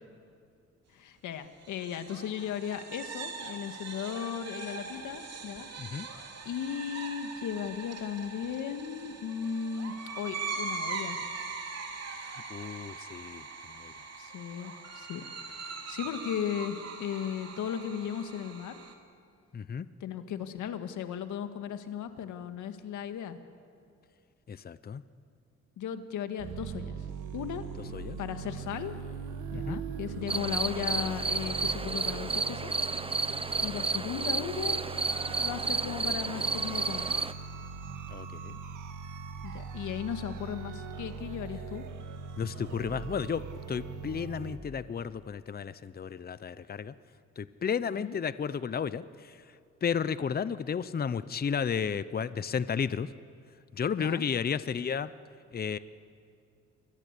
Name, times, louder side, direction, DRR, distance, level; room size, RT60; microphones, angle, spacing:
voice 1, 0.9-5.7 6.0-6.1 6.5-11.2 14.2-15.2 15.5-18.9 20.0-23.4 25.8-27.0 27.3-27.6 28.2-29.0 29.5-32.7 33.6-34.9 35.3-37.1 39.4-41.8 47.9-48.2 53.9-54.3, left 8 dB, 80° left, 8 dB, 1.9 m, -36 dB
sound 1, 1.7-18.9, right 4 dB, 55° right, 3.4 m, -41 dB
voice 2, 12.2-13.5 13.7-13.9 19.5-19.9 24.5-25.0 27.9-28.2 29.5-29.8 38.1-38.6 42.4-46.9 47.4-49.4 49.8-53.1 53.7-55.1 55.5-55.8, left 7 dB, 30° left, 15 dB, 0.8 m, -33 dB
sound 2, 26.4-44.6, right 6 dB, 85° right, 2.2 m, -40 dB
sound 3, 30.3-37.3, right 3 dB, 20° right, 0.9 m, -31 dB
29.0 x 23.0 x 8.4 m, 2.4 s
cardioid pair, 90°, 30 cm